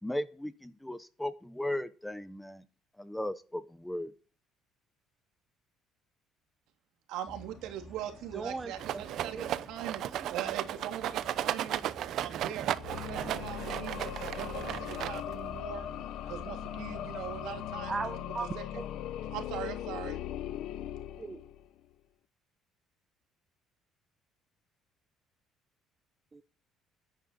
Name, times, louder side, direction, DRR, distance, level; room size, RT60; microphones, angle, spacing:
voice 1, 0.0-2.6 3.0-4.1, left 1 dB, 5° left, 1.0 m, -36 dB
voice 2, 7.1-11.8 12.1-12.7 13.1-17.9 18.6-18.7 19.3-20.2, right 11 dB, 80° right, 2.9 m, -41 dB
sound 1, 7.3-17.8, left 1 dB, 25° left, 3.5 m, -52 dB
voice 3, 8.3-9.5 17.9-18.8 21.2-21.4 26.3-26.4, right 4 dB, 25° right, 1.0 m, -38 dB
Rattle, 8.8-15.5, right 12 dB, 65° right, 0.7 m, -35 dB
sound 2, 12.7-21.8, left 11 dB, 75° left, 0.9 m, -39 dB
10.0 x 9.4 x 8.6 m
cardioid pair, 110°, 0 cm